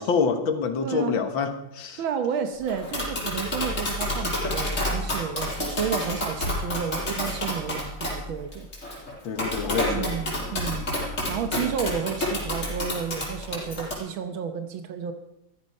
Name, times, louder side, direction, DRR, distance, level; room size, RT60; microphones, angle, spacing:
voice 1, 0.0-2.0 9.2-10.1, left 5 dB, 75° left, 7 dB, 2.1 m, -26 dB
voice 2, 0.8-1.2 2.0-8.7 9.9-10.9 11.3-15.1, right 8 dB, 80° right, 8 dB, 1.8 m, -31 dB
Tap, 2.7-13.9, left 1 dB, 35° left, 5.3 m, -29 dB
14.5 x 14.5 x 5.5 m, 0.81 s
omnidirectional pair, 2.2 m